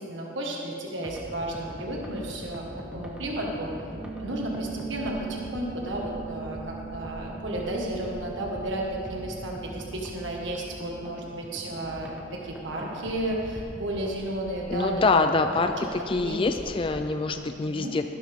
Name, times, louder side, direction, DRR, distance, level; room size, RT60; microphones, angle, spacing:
voice 1, 0.0-2.6 2.9-3.7 4.2-15.0 16.0-16.4 17.7-17.9, right 1 dB, 70° right, -2 dB, 1.7 m, -33 dB
sound 1, 1.0-17.1, equal, 5° right, 1.3 m, -43 dB
sound 2, 3.7-14.6, right 6 dB, 30° right, 1.4 m, -43 dB
voice 2, 14.7-18.0, left 3 dB, 25° left, 7 dB, 0.4 m, -25 dB
16.0 x 12.0 x 3.6 m, 2.7 s
head